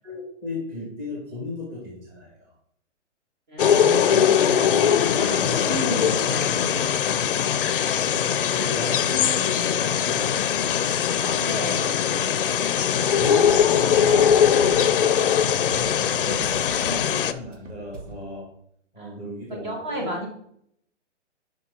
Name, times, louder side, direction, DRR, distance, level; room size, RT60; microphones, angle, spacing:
voice 1, 0.0-2.5 5.4-5.6 8.1-10.8 12.9-14.9 15.7-18.5 18.9-20.1, left 2 dB, 15° right, -3 dB, 1.5 m, -35 dB
voice 2, 3.5-4.7 5.1-7.6 11.2-12.1 19.0-19.1 19.5-20.3, right 1 dB, 40° right, 1 dB, 1.7 m, -33 dB
sound 1, 3.6-17.3, left 8 dB, 50° left, 0.4 m, -21 dB
sound 2, 13.0-18.2, right 2 dB, 85° right, 1.5 m, -40 dB
5.9 x 5.2 x 5.1 m, 0.67 s
hypercardioid pair, 160°, 37 cm